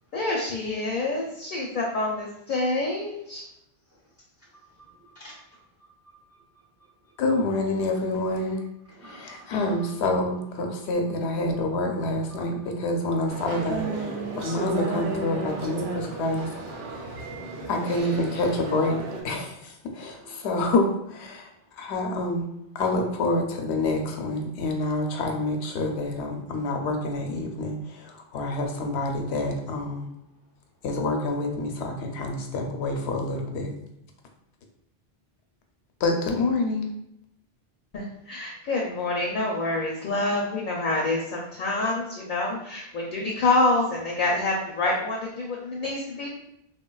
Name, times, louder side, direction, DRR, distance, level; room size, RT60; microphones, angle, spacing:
voice 1, 0.1-3.4 37.9-46.3, left 2 dB, 60° left, -2 dB, 0.6 m, -27 dB
voice 2, 4.4-7.1 8.9-10.1 10.7-11.1 11.8-12.6 14.3-14.4 20.1-20.6 21.3-21.9 26.5-26.7 28.2-28.3, right 1 dB, 25° right, -4 dB, 0.3 m, -53 dB
voice 3, 7.2-8.6 9.0-16.5 16.9-17.0 17.7-19.0 19.2-21.5 21.8-30.1 30.8-33.7 36.0-36.9, left 2 dB, 85° left, 3 dB, 0.8 m, -27 dB
sound 1, 13.3-19.2, right 3 dB, 75° right, 0.8 m, -33 dB
3.4 x 2.2 x 2.2 m, 0.79 s
omnidirectional pair, 1.1 m